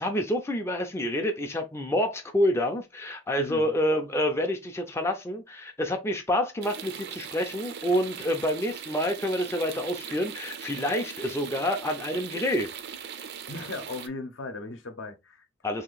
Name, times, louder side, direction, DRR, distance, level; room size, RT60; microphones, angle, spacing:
voice 1, 0.0-12.7 15.6-15.8, equal, 15° left, 0.4 m, -28 dB
voice 2, 3.4-3.7 13.5-15.5, left 3 dB, 70° left, 0.7 m, -37 dB
sound 1, 6.6-14.1, right 8 dB, 55° right, 0.4 m, -40 dB
2.8 x 2.5 x 3.9 m
head